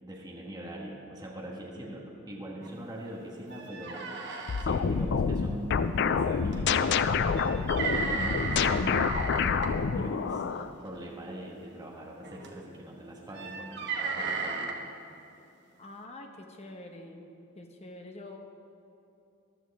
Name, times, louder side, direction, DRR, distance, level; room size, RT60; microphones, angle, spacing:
voice 1, 0.0-4.0 4.3-9.3 9.9-10.4 10.8-14.7, right 1 dB, 20° right, -3 dB, 1.4 m, -42 dB
voice 2, 1.8-2.2 15.8-17.3 17.5-18.4, left 2 dB, 30° left, 3 dB, 1.0 m, -46 dB
sound 1, 2.6-2.7 3.1-3.2 3.5-4.6 6.5-6.7 7.3-9.7 10.8-11.1 12.2-12.6 13.3-14.7, right 4 dB, 55° right, 1.3 m, -34 dB
sound 2, 4.5-10.7, left 5 dB, 55° left, 0.4 m, -27 dB
15.0 x 12.0 x 3.5 m, 2.7 s
head